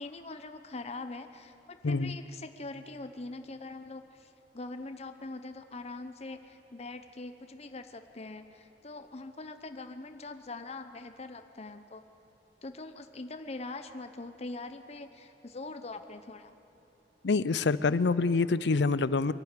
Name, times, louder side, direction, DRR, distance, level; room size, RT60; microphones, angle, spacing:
voice 1, 0.0-12.0 12.6-16.5, left 2 dB, 35° left, 8 dB, 0.8 m, -43 dB
voice 2, 1.8-2.2 17.2-19.3, left 4 dB, 70° left, 17 dB, 0.5 m, -26 dB
23.5 x 12.0 x 9.6 m, 2.9 s
head